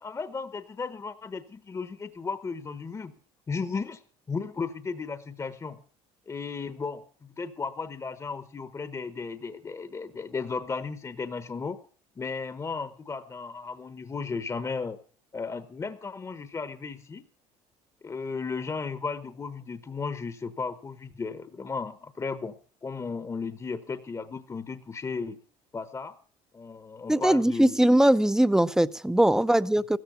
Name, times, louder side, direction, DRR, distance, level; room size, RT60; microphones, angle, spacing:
voice 1, 0.0-3.1 3.5-4.0 4.3-5.8 6.3-11.8 12.2-15.0 15.3-17.2 18.0-22.6 22.8-25.4 25.7-26.1 26.5-27.8 29.5-29.6, left 4 dB, 20° left, 1.0 m, -35 dB
voice 2, 27.1-30.0, right 1 dB, 5° right, 0.7 m, -21 dB
15.5 x 14.0 x 5.6 m
supercardioid pair, 100°, 13 cm